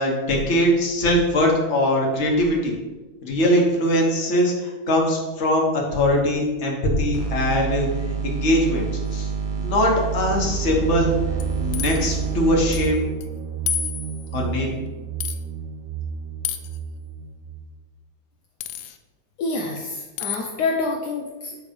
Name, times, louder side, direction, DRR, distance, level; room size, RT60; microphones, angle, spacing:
voice 1, 0.0-2.7 3.2-7.9 8.2-8.8 9.1-9.3 9.5-11.1 11.6-13.0 14.3-14.7, left 1 dB, 40° left, -1 dB, 1.3 m, -21 dB
sound 1, 7.1-12.9, right 5 dB, 55° right, 1.0 m, -28 dB
sound 2, 10.0-17.7, right 6 dB, 80° right, 0.7 m, -31 dB
sound 3, 11.4-12.1 12.7-12.9 13.2-13.3 13.7-14.3 15.2-15.4 16.4-16.8 18.6-19.0 20.2-20.5, left 8 dB, 85° left, 1.5 m, -30 dB
voice 2, 19.4-21.6, left 3 dB, 70° left, 1 dB, 0.9 m, -27 dB
7.8 x 3.2 x 5.2 m, 1.2 s
omnidirectional pair, 2.4 m